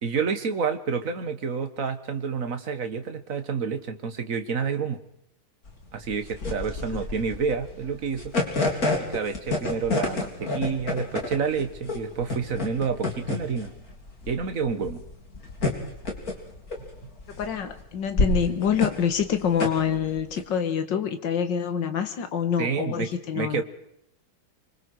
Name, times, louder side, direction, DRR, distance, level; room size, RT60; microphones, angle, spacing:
voice 1, 0.0-5.0 5.9-8.3 9.0-13.7 14.3-15.0 22.6-23.6, right 5 dB, 40° right, 8 dB, 1.7 m, -29 dB
sound 1, 5.7-20.4, left 3 dB, 40° left, 3.8 m, -29 dB
voice 2, 17.4-23.6, left 8 dB, 60° left, 9 dB, 2.2 m, -26 dB
26.0 x 24.0 x 4.8 m, 0.75 s
omnidirectional pair, 2.3 m